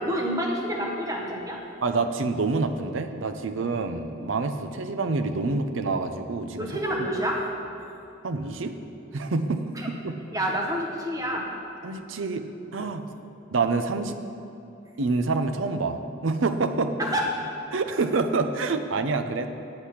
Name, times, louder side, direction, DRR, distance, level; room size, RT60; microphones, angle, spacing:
voice 1, 0.0-1.6 6.6-7.4 9.7-9.9 10.3-11.4 17.0-17.2, equal, 15° right, -1 dB, 1.1 m, -28 dB
voice 2, 1.8-6.7 7.0-7.1 8.2-8.7 9.1-10.1 11.8-12.4 12.7-13.0 13.5-14.2 15.0-17.0 17.7-19.5, right 3 dB, 65° right, 8 dB, 0.6 m, -27 dB
8.7 x 6.5 x 5.7 m, 2.8 s
head